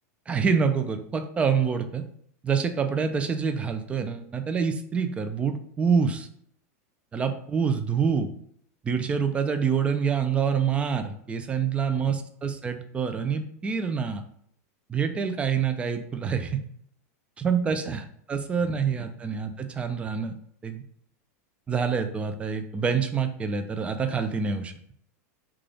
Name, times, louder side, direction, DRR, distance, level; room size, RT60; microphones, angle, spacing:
voice 1, 0.3-2.0 2.4-6.3 7.1-8.3 8.8-14.2 14.9-16.6 17.4-18.0 18.3-20.3 20.6-20.8 21.7-24.7, right 6 dB, 15° right, 8 dB, 0.3 m, -26 dB
3.3 x 2.3 x 3.7 m, 0.66 s
supercardioid pair, 140°, 9 cm